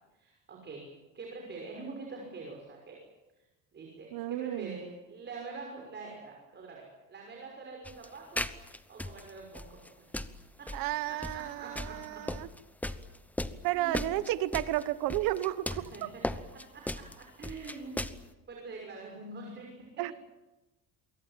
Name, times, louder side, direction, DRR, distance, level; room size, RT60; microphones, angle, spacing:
voice 1, 0.1-0.9 1.1-3.0 3.7-8.5 8.9-10.1 10.8-12.2 13.7-14.0 15.7-16.2 16.7-18.0 18.5-19.9, right 3 dB, 30° right, 0 dB, 6.0 m, -45 dB
voice 2, 4.1-4.8 10.7-12.5 13.6-16.1 20.0-20.1, right 15 dB, 70° right, 14 dB, 1.2 m, -32 dB
sound 1, 7.8-18.3, left 1 dB, 5° left, 1.0 m, -37 dB
25.5 x 23.5 x 7.5 m, 1.1 s
cardioid pair, 140°, 35 cm